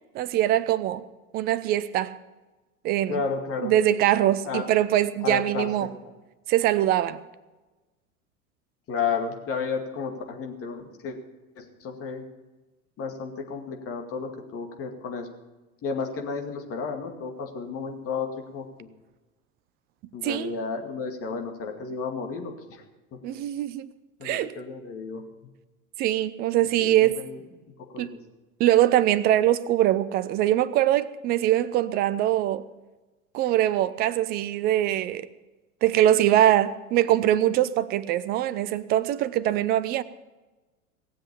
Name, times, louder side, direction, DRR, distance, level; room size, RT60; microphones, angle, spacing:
voice 1, 0.1-1.0 1.3-2.1 2.8-3.2 3.6-5.9 6.5-7.2 20.2-20.5 23.2-23.9 24.2-24.5 26.0-27.2 28.0-28.1 28.6-32.6 33.3-35.3 35.8-40.0, right 13 dB, 25° right, 0.4 m, -22 dB
voice 2, 3.1-3.7 4.4-4.7 5.2-5.9 8.9-11.2 11.6-12.2 13.0-15.3 15.8-18.9 20.1-22.8 24.2-25.2 26.6-27.4 27.8-28.2, left 5 dB, 30° left, 2.3 m, -32 dB
18.0 x 7.7 x 8.5 m
figure-of-eight pair, 85°, 43 cm